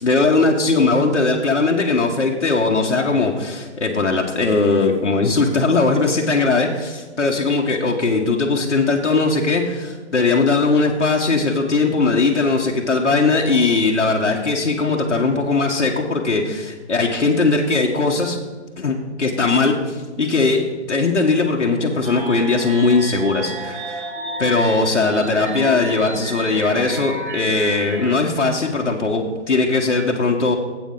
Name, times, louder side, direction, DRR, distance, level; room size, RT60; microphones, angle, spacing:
voice 1, 0.0-18.4 18.8-24.0 24.4-30.6, left 3 dB, 75° left, 0 dB, 1.5 m, -19 dB
sound 1, 22.0-28.2, right 1 dB, 45° right, 1.9 m, -31 dB
12.5 x 8.3 x 3.9 m, 1.3 s
figure-of-eight pair, 140°, 35 cm